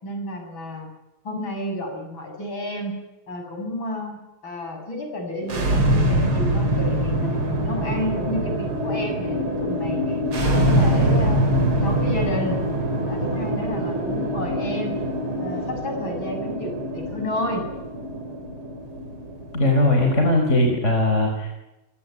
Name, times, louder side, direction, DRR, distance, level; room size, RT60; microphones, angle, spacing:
voice 1, 0.0-0.9 1.2-3.0 3.3-7.3 7.6-10.2 10.4-12.6 13.1-15.0 15.4-17.7, left 1 dB, 40° left, 4 dB, 7.7 m, -31 dB
sound 1, 5.4-20.4, right 1 dB, 45° right, 4.4 m, -24 dB
voice 2, 19.5-21.5, left 1 dB, 25° left, 2 dB, 4.6 m, -19 dB
26.5 x 18.0 x 9.7 m, 0.93 s
omnidirectional pair, 3.4 m